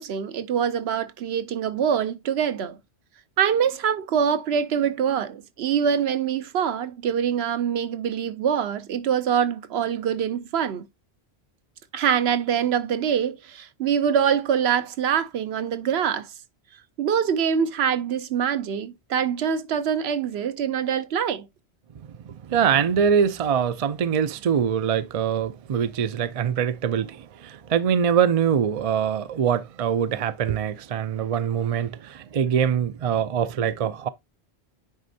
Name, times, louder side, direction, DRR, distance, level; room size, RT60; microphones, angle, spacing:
voice 1, 0.0-2.8 3.4-10.8 11.9-16.3 17.0-21.5, right 8 dB, 75° right, 0.9 m, -24 dB
voice 2, 22.3-34.1, right 8 dB, 50° right, 0.4 m, -23 dB
9.7 x 4.3 x 2.7 m
omnidirectional pair, 1.1 m